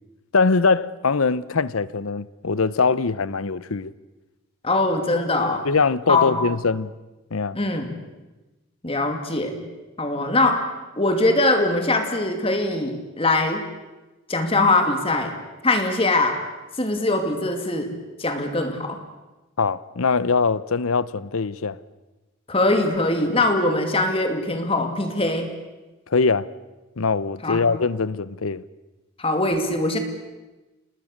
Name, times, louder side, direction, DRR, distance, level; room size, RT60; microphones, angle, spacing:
voice 1, 0.3-3.9 5.6-6.9 7.3-7.6 19.6-21.8 26.1-26.5 27.0-28.6, left 4 dB, 85° left, 0.8 m, -22 dB
voice 2, 4.6-5.7 6.1-6.3 7.5-7.9 8.8-9.6 10.0-10.7 11.0-13.6 14.3-15.3 15.6-16.4 16.8-19.0 22.5-25.5 27.4-27.6 29.2-30.0, left 2 dB, 25° left, 2.4 m, -22 dB
28.5 x 20.0 x 6.6 m
head